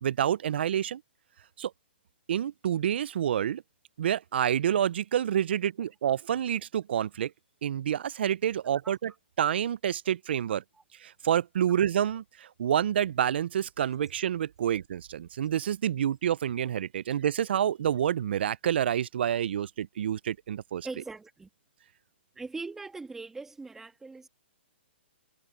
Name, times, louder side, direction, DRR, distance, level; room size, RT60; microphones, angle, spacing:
voice 1, 0.0-1.0 1.6-1.7 2.3-3.6 4.0-7.3 7.6-9.1 9.4-10.6 11.0-20.9, right 10 dB, 65° right, 0.4 m, -28 dB
voice 2, 8.8-9.2 10.7-10.8 14.6-14.8 20.8-21.5 22.3-24.3, right 3 dB, 5° right, 1.6 m, -41 dB
hypercardioid pair, 160°, 6 cm